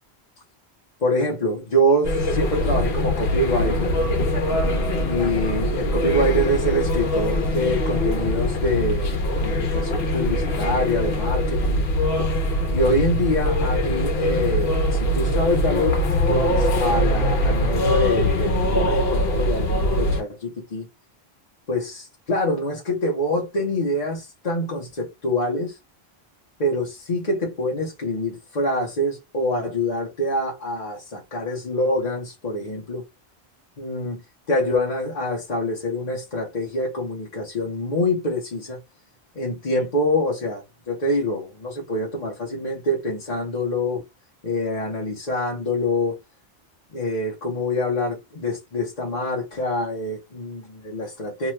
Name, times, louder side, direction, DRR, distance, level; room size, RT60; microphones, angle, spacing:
voice 1, 1.0-4.0 5.0-11.8 12.7-16.0 16.3-20.9 21.7-25.8 26.6-33.0 33.8-38.8 39.3-44.1 44.4-46.2 46.9-51.5, left 1 dB, 45° left, 0.9 m, -25 dB
sound 1, 2.0-20.2, left 1 dB, 70° left, 1.1 m, -22 dB
2.8 x 2.3 x 3.1 m
omnidirectional pair, 1.1 m